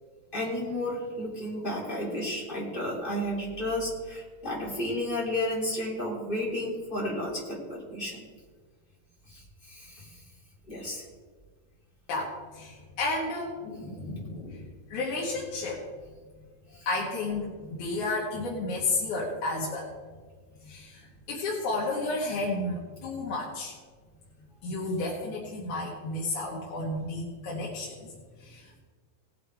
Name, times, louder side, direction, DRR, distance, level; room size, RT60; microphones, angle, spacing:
voice 1, 0.3-8.2 9.3-10.1 10.7-11.0 16.7-16.9, left 1 dB, 15° left, -5 dB, 3.0 m, -32 dB
voice 2, 12.1-15.8 16.9-19.9 20.6-23.7 24.6-28.1 28.4-28.8, left 2 dB, 60° left, -4 dB, 2.9 m, -32 dB
18.0 x 7.4 x 4.7 m, 1.5 s
omnidirectional pair, 4.2 m